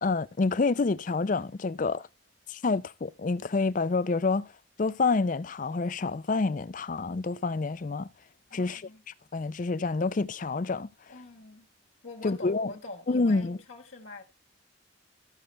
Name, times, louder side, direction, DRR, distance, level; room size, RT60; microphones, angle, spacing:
voice 1, 0.0-2.0 2.5-4.5 4.8-8.1 8.5-8.8 9.3-10.9 12.2-12.7 13.1-13.6, left 3 dB, 40° left, 0.4 m, -28 dB
voice 2, 8.5-9.0 11.1-11.7 12.0-14.2, left 2 dB, 70° left, 1.6 m, -45 dB
14.0 x 6.6 x 3.3 m
head